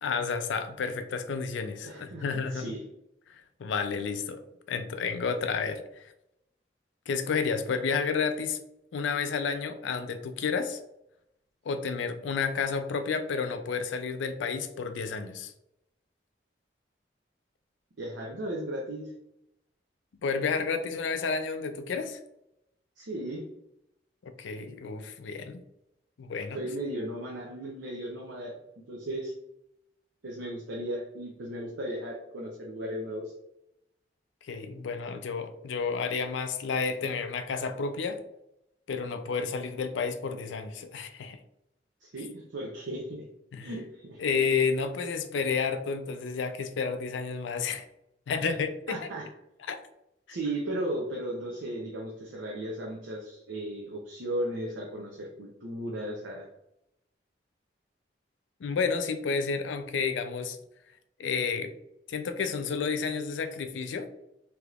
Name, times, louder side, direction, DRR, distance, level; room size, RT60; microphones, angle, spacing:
voice 1, 0.0-2.7 3.6-4.4 4.7-6.1 7.1-8.6 8.9-10.8 11.7-15.5 20.2-22.2 24.2-25.6 26.2-26.6 34.4-38.2 38.9-41.4 43.5-43.7 44.2-47.8 48.3-49.0 49.7-49.8 58.6-60.6 61.2-61.7 62.1-64.1, left 5 dB, 90° left, 9 dB, 0.4 m, -31 dB
voice 2, 1.8-2.8 18.0-19.1 23.0-23.4 26.5-28.6 28.9-29.3 30.2-33.3 42.0-43.3 43.6-44.2 48.4-48.6 48.9-49.3 50.3-56.5, right 1 dB, 90° right, -2 dB, 0.6 m, -36 dB
3.4 x 2.9 x 2.4 m, 0.83 s
head